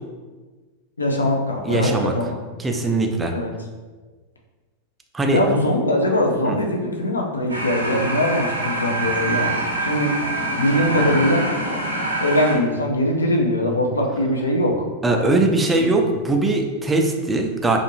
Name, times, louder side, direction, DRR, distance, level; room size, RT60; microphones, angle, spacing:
voice 1, 1.0-2.4 3.3-3.5 5.3-9.5 9.8-10.2 10.6-11.5 12.2-15.3 15.7-15.9, left 1 dB, 75° left, 1 dB, 0.4 m, -21 dB
voice 2, 1.6-2.1 2.6-3.3 5.1-5.4 6.4-6.6 15.0-17.8, right 2 dB, 15° right, 3 dB, 0.3 m, -20 dB
sound 1, 7.5-12.5, right 2 dB, 85° right, 0.6 m, -25 dB
2.6 x 2.4 x 2.8 m, 1.4 s
figure-of-eight pair, 90°, 0 cm